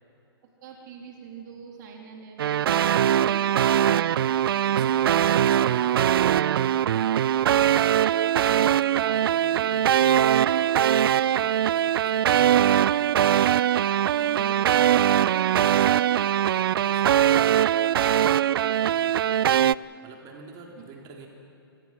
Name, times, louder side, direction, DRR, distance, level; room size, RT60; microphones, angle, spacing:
voice 1, 0.6-4.2 9.0-9.2 9.6-9.8 14.1-16.0, right 6 dB, 50° right, 1 dB, 3.7 m, -44 dB
sound 1, 2.4-19.7, right 10 dB, 65° right, 0.4 m, -21 dB
voice 2, 3.4-3.8 4.6-6.5 8.3-10.7 11.0-13.3 16.5-21.3, right 4 dB, 30° right, 0 dB, 3.7 m, -47 dB
27.0 x 25.0 x 6.1 m, 2.9 s
hypercardioid pair, 130°, 13 cm